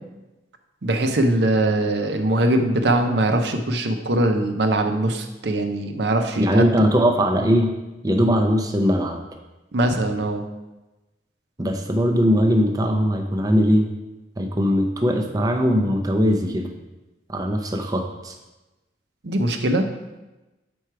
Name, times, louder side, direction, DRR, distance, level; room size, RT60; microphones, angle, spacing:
voice 1, 0.8-6.9 9.7-10.4 19.2-19.9, right 1 dB, 65° right, 5 dB, 0.7 m, -21 dB
voice 2, 6.4-7.7 8.0-9.2 11.6-13.9 14.4-16.7 17.3-18.3, equal, 20° right, 3 dB, 0.5 m, -20 dB
6.9 x 4.8 x 4.6 m, 1.1 s
head